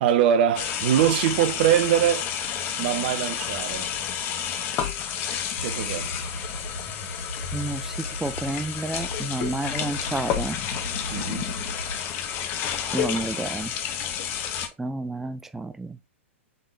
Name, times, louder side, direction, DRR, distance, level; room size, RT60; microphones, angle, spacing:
voice 1, 0.0-2.3 2.8-3.9 5.6-6.1 11.1-11.5, right 10 dB, 50° right, 0.7 m, -23 dB
sound 1, 0.5-14.7, left 9 dB, 30° left, 0.8 m, -30 dB
sound 2, 5.6-8.6 9.0-12.0, equal, 85° left, 2.9 m, -37 dB
voice 2, 7.5-10.6 12.9-13.7 14.8-16.0, right 2 dB, 5° right, 0.4 m, -30 dB
5.2 x 3.6 x 2.6 m
figure-of-eight pair, 110°, 7 cm